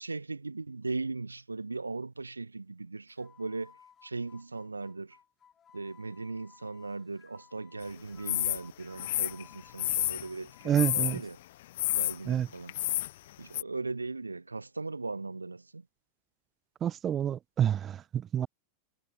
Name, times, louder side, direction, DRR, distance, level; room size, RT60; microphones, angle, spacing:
voice 1, 0.0-3.7 4.0-5.2 5.7-11.4 11.9-12.7 13.4-15.8, right 3 dB, 80° right, 2.8 m, -38 dB
sound 1, 3.1-11.3, left 8 dB, 20° left, 6.1 m, -59 dB
sound 2, 8.3-8.6 9.0-10.3 10.8-11.2 11.8-12.2 12.7-13.1 13.5-13.6, left 15 dB, 55° left, 1.5 m, -29 dB
voice 2, 10.6-11.2 12.3-12.5 16.8-18.5, right 9 dB, 25° right, 0.4 m, -28 dB
figure-of-eight pair, 90°, 0 cm